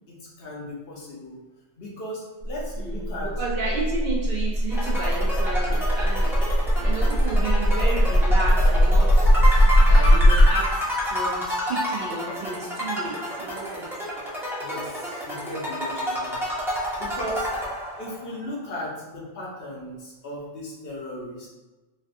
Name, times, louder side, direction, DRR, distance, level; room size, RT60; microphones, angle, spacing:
voice 1, 0.1-1.4 1.8-3.4 14.6-16.4 17.0-17.5 18.0-21.5, left 1 dB, 65° left, -4 dB, 1.0 m, -36 dB
sound 1, 2.5-10.5, equal, 90° left, 1.1 m, -19 dB
voice 2, 2.8-10.7 11.0-13.9, right 3 dB, 60° right, -2 dB, 0.6 m, -32 dB
sound 2, 4.7-18.3, equal, 5° right, 0.5 m, -30 dB
3.2 x 2.5 x 2.5 m, 1.2 s
omnidirectional pair, 1.1 m